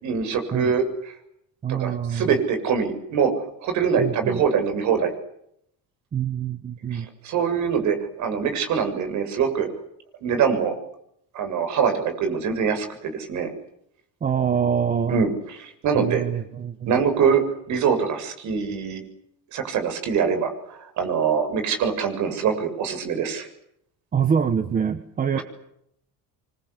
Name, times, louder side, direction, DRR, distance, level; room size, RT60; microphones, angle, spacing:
voice 1, 0.0-0.8 1.8-3.3 3.6-5.1 6.9-9.7 10.2-10.7 11.3-13.5 15.1-15.3 15.6-16.2 16.9-17.4 17.7-19.0 19.5-23.5 25.3-25.4, right 6 dB, 50° right, 7 dB, 7.2 m, -23 dB
voice 2, 1.6-2.3 4.0-4.4 6.1-7.1 14.2-15.3 15.9-16.9 24.1-25.4, right 7 dB, 20° right, 10 dB, 1.4 m, -25 dB
28.0 x 25.0 x 8.3 m, 0.75 s
cardioid pair, 175°, 37 cm